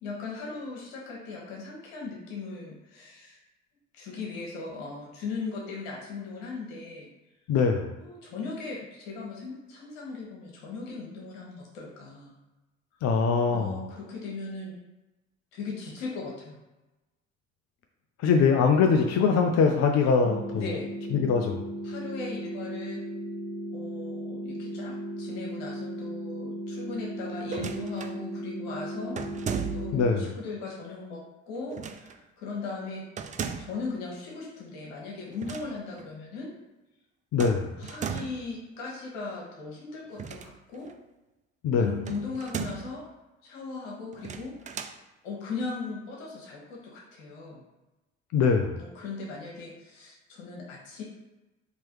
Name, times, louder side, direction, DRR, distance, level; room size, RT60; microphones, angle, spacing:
voice 1, 0.0-3.4 3.9-7.1 8.0-12.4 13.5-14.7 15.5-16.6 20.5-20.9 21.8-23.0 23.7-31.2 31.5-33.0 33.6-36.5 37.8-40.9 41.7-43.0 43.4-44.5 45.2-47.6 48.8-51.0, left 4 dB, 70° left, -3 dB, 1.4 m, -38 dB
voice 2, 7.5-7.9 13.0-13.8 18.2-20.6 21.1-21.6 29.9-30.3 37.3-37.7 41.6-41.9 48.3-48.8, left 5 dB, 45° left, 4 dB, 0.5 m, -23 dB
sound 1, 20.2-30.2, right 1 dB, 85° right, 1.0 m, -36 dB
sound 2, 27.4-28.2 29.2-30.1 31.7-32.2 33.2-33.9 35.3-35.7 36.0-36.1 37.4-38.5 40.1-40.9 42.1-43.0 44.1-45.0, right 6 dB, 20° right, 0.3 m, -36 dB
4.6 x 3.0 x 3.0 m, 1.1 s
figure-of-eight pair, 50°, 37 cm